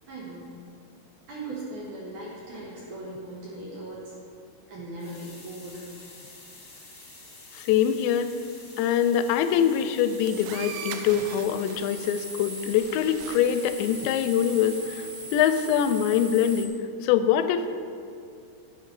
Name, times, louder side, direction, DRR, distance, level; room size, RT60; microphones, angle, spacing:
voice 1, 0.1-0.5 1.3-4.1 4.7-5.8, right 2 dB, 60° right, -5 dB, 2.2 m, -38 dB
sound 1, 5.0-14.8, left 2 dB, 70° left, 0.6 m, -48 dB
voice 2, 7.5-8.3 8.8-17.7, left 9 dB, 90° left, 10 dB, 2.8 m, -24 dB
sound 2, 10.0-16.7, right 3 dB, 85° right, 2.9 m, -39 dB
11.0 x 10.5 x 3.3 m, 2.4 s
omnidirectional pair, 5.0 m